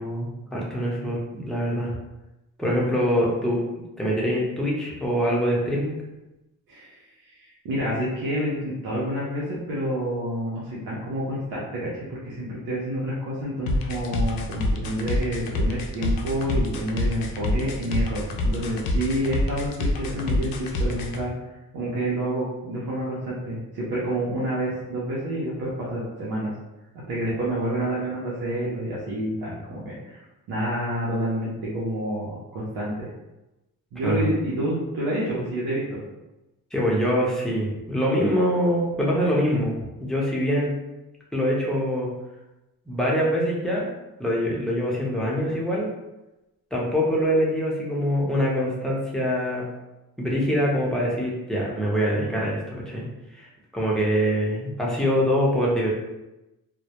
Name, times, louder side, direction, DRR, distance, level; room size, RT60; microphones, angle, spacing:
voice 1, 0.0-1.9 2.6-6.0 34.0-34.3 36.7-40.7 41.3-42.1 42.9-43.9 44.2-45.9 46.7-49.6 50.2-53.0 53.3-53.5 53.7-55.9, equal, ahead, -5 dB, 0.7 m, -24 dB
voice 2, 6.7-7.0 7.4-21.3 21.7-26.5 27.1-30.2 30.5-33.1 33.9-36.0, right 1 dB, 90° right, -7 dB, 0.7 m, -28 dB
sound 1, 13.7-21.2, left 2 dB, 70° left, 0.5 m, -26 dB
2.2 x 2.0 x 2.8 m, 0.99 s
cardioid pair, 70°, 36 cm